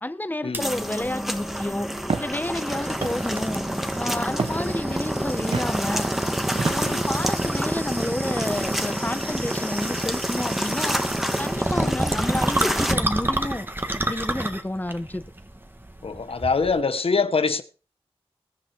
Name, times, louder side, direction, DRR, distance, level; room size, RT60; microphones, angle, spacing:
voice 1, 0.0-1.9 2.2-3.6 4.0-6.1 6.7-11.0 11.4-13.7 13.9-15.2, left 1 dB, 15° left, 1.4 m, -30 dB
sound 1, 0.5-16.8, right 1 dB, 20° right, 2.1 m, -29 dB
sound 2, 0.6-12.9, equal, 5° right, 2.2 m, -30 dB
Walk footsteps, 2.1-2.4 3.0-3.4 4.4-4.7 5.5-5.8 6.6-7.1, right 4 dB, 60° right, 1.0 m, -29 dB
voice 2, 16.0-17.6, left 4 dB, 65° left, 1.1 m, -24 dB
21.0 x 7.5 x 4.7 m
cardioid pair, 50°, 11 cm